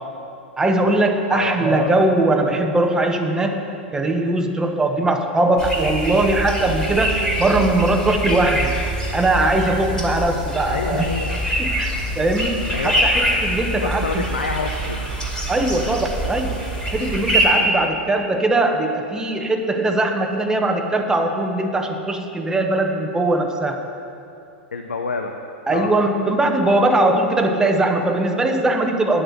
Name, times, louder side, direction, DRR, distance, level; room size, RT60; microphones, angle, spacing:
voice 1, 0.6-8.7 9.1-11.1 11.6-14.2 15.5-16.6 16.9-23.8 25.7-29.2, right 2 dB, 10° right, 4 dB, 1.0 m, -20 dB
voice 2, 1.3-1.9 10.7-11.4 12.7-13.0 13.8-15.1 24.7-25.3 25.7-25.9, left 4 dB, 80° left, 4 dB, 0.6 m, -27 dB
sound 1, 5.6-17.5, right 1 dB, 10° left, 2.6 m, -24 dB
10.5 x 6.5 x 7.8 m, 2.7 s
figure-of-eight pair, 95°, 6 cm